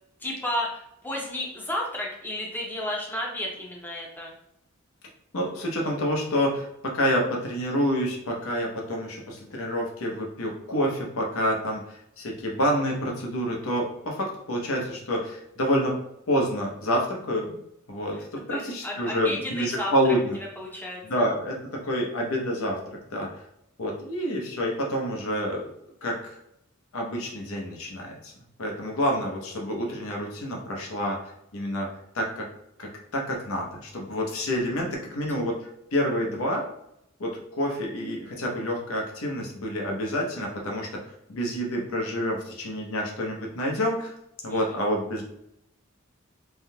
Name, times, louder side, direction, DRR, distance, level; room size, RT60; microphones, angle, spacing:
voice 1, 0.2-4.3 18.1-18.2 18.5-19.9 20.6-21.3 44.5-44.6, left 1 dB, 10° left, -2 dB, 0.6 m, -32 dB
voice 2, 5.3-6.7 6.9-16.0 16.3-17.6 17.9-20.4 21.0-23.4 23.8-25.7 26.0-26.4 26.9-28.3 28.6-31.2 31.5-31.9 32.1-32.5 32.8-36.7 37.2-41.0 41.3-44.1 44.4-45.2, equal, 85° left, 0 dB, 0.8 m, -28 dB
3.5 x 2.7 x 2.2 m, 0.77 s
head